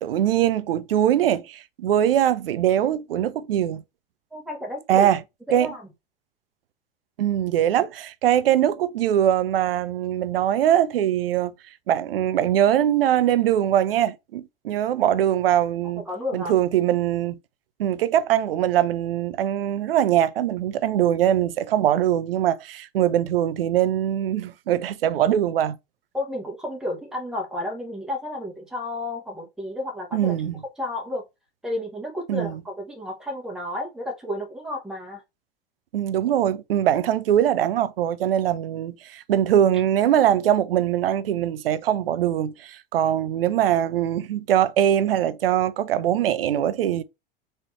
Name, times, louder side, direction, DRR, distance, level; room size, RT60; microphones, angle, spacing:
voice 1, 0.0-3.8 4.9-5.2 5.5-5.7 7.2-11.5 11.9-16.0 16.3-17.4 17.8-25.8 30.1-30.5 32.3-32.6 35.9-47.0, right 11 dB, 70° right, 0.6 m, -22 dB
voice 2, 4.3-5.1 5.5-5.8 16.1-16.5 26.1-30.3 30.8-31.2 31.6-35.2, left 1 dB, ahead, 1.2 m, -31 dB
4.2 x 3.0 x 3.2 m
figure-of-eight pair, 85°, 30 cm